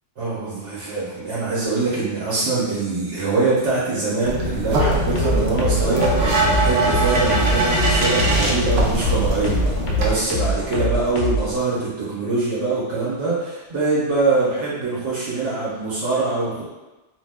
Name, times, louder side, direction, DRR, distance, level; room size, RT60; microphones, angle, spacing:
voice 1, 0.2-16.6, right 3 dB, 80° right, -8 dB, 1.1 m, -23 dB
sound 1, 4.2-10.1, right 1 dB, 65° right, 0.8 m, -22 dB
sound 2, 4.7-11.5, equal, 55° left, 0.6 m, -24 dB
2.6 x 2.1 x 3.3 m, 1.1 s
omnidirectional pair, 1.2 m